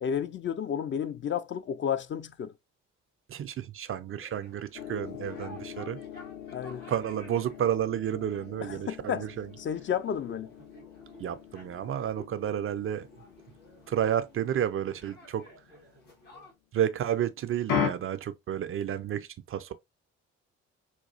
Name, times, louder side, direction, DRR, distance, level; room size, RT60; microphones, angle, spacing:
voice 1, 0.0-2.5 6.5-6.8 8.6-9.3 9.6-10.5, left 8 dB, 35° left, 0.4 m, -32 dB
voice 2, 3.3-6.0 6.9-9.5 11.2-13.1 13.9-15.5 16.7-19.7, right 10 dB, 40° right, 0.4 m, -31 dB
sound 1, 4.1-16.5, left 1 dB, 80° left, 1.9 m, -54 dB
sound 2, 4.7-16.2 17.7-17.9, left 7 dB, 60° left, 0.8 m, -39 dB
3.9 x 2.3 x 2.6 m
hypercardioid pair, 40°, 37 cm